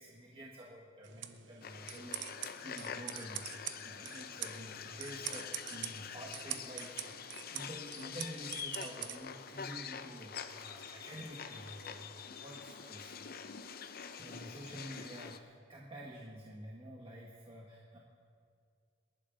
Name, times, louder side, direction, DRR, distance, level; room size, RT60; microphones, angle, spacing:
voice 1, 0.0-2.2 2.6-13.3 14.2-18.0, equal, 30° right, -4 dB, 1.7 m, -49 dB
sound 1, 1.0-9.2, right 11 dB, 65° right, 0.8 m, -45 dB
sound 2, 1.6-15.4, left 7 dB, 50° left, 0.7 m, -46 dB
28.0 x 11.5 x 4.0 m, 2.3 s
head